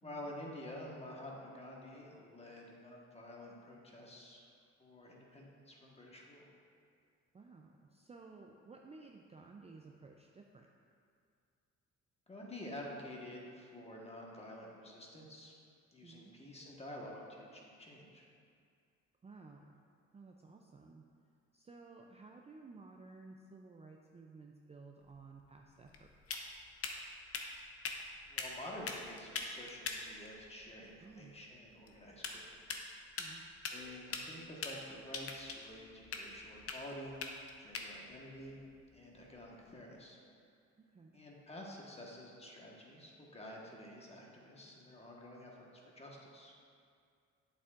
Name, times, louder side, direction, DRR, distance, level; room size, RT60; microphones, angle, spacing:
voice 1, 0.0-4.4 4.8-6.5 12.3-15.5 15.9-18.2 28.3-32.6 33.7-37.2 37.6-38.6 38.9-40.2 41.1-45.7 45.9-46.5, left 1 dB, 20° left, -2 dB, 1.3 m, -49 dB
voice 2, 7.3-10.7 16.0-16.3 19.2-19.8 20.1-21.0 21.5-26.5 31.0-31.3 33.2-33.5 40.8-41.2, right 3 dB, 20° right, 1 dB, 0.4 m, -55 dB
sound 1, 25.0-39.7, left 4 dB, 50° left, 0.8 m, -45 dB
8.3 x 7.0 x 2.5 m, 2.3 s
cardioid pair, 90°, 30 cm